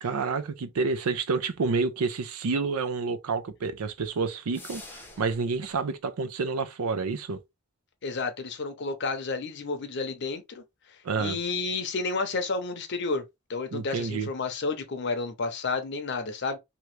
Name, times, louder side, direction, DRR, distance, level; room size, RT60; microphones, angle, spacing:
voice 1, 0.0-7.4 11.0-11.4 13.7-14.3, right 4 dB, 90° right, 0.5 m, -29 dB
sound 1, 4.5-5.5, left 2 dB, 10° left, 0.6 m, -45 dB
voice 2, 8.0-10.6 11.2-13.2 13.5-16.6, left 4 dB, 50° left, 0.6 m, -31 dB
2.9 x 2.3 x 3.1 m
head